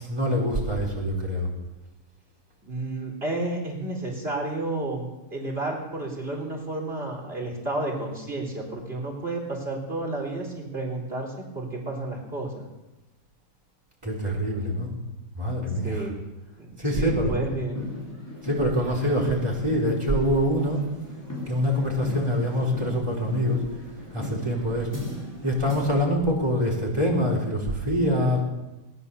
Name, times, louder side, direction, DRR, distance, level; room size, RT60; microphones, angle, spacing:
voice 1, 0.1-1.5 14.0-14.9 15.3-16.1 16.8-17.4 18.4-20.8 21.5-23.6 24.1-24.9 25.4-28.4, equal, 15° right, -2 dB, 4.3 m, -25 dB
voice 2, 2.6-12.7 15.8-16.1 16.6-17.9, right 2 dB, 35° right, -2 dB, 4.1 m, -31 dB
sound 1, 17.8-26.0, left 2 dB, 10° left, 4.5 m, -37 dB
19.5 x 10.5 x 7.0 m, 1.0 s
omnidirectional pair, 1.8 m